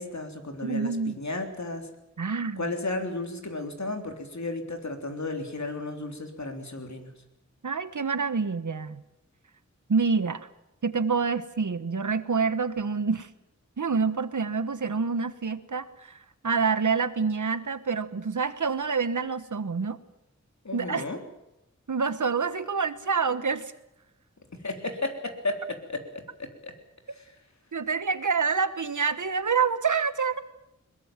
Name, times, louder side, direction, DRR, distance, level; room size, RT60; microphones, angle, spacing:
voice 1, 0.0-1.9 2.6-7.1 20.6-21.2 24.6-26.7 27.1-27.4, left 2 dB, 70° left, 4 dB, 3.6 m, -34 dB
voice 2, 0.6-1.1 2.2-2.7 7.6-9.0 9.9-10.5 10.8-13.3 13.8-16.2 16.4-20.0 20.7-21.0 21.9-23.7 27.7-30.4, right 5 dB, 90° right, 13 dB, 1.2 m, -27 dB
22.0 x 21.0 x 7.4 m, 0.90 s
wide cardioid pair, 65°, 29 cm